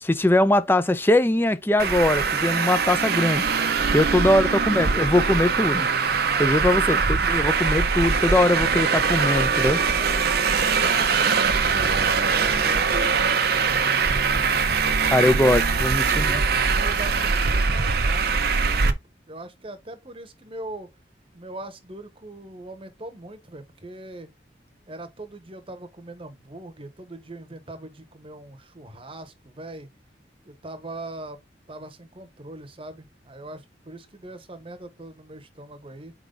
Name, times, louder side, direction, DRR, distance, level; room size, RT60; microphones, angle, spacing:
voice 1, 0.0-3.4 3.9-5.9 6.4-9.8 15.1-16.4, left 1 dB, 10° left, 0.5 m, -21 dB
Traffic noise roadway noise, 1.8-18.9, right 5 dB, 60° right, 0.7 m, -22 dB
voice 2, 3.4-4.4 6.1-7.3 9.8-12.1 12.4-13.7 16.1-18.6 18.8-19.0 19.3-20.9 21.3-24.3 24.9-29.9 30.4-31.4 31.7-36.1, right 2 dB, 30° right, 1.0 m, -41 dB
4.7 x 3.8 x 5.2 m
head